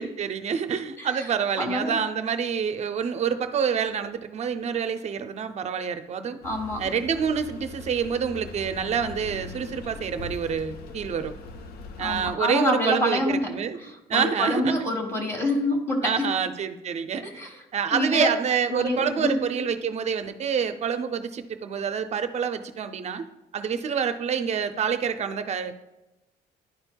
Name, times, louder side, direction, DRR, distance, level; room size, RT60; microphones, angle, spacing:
voice 1, 0.0-6.4 6.8-11.3 12.0-13.8 14.1-14.7 16.0-17.2 17.7-23.2 23.5-25.7, right 7 dB, 40° right, 9 dB, 0.5 m, -27 dB
voice 2, 1.6-2.0 6.4-6.8 12.0-13.5 13.8-16.3 17.2-17.5 17.9-18.3 18.7-19.4, left 1 dB, 15° left, 2 dB, 1.3 m, -26 dB
sound 1, 6.4-12.3, left 4 dB, 70° left, 0.7 m, -41 dB
11.0 x 4.3 x 2.2 m, 0.95 s
cardioid pair, 110°, 17 cm